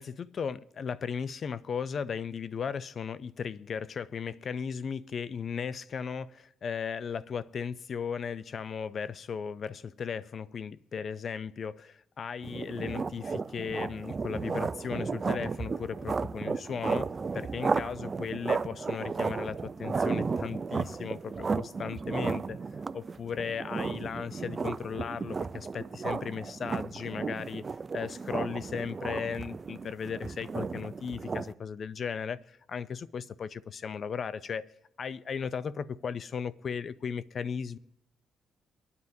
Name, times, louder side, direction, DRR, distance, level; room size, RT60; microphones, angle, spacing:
voice 1, 0.0-22.6 22.9-27.6 27.9-34.7 35.0-37.8, left 6 dB, 50° left, 0.4 m, -36 dB
sound 1, 12.4-31.5, right 4 dB, 35° right, 0.3 m, -34 dB
25.5 x 9.6 x 2.7 m
cardioid pair, 90°, 0 cm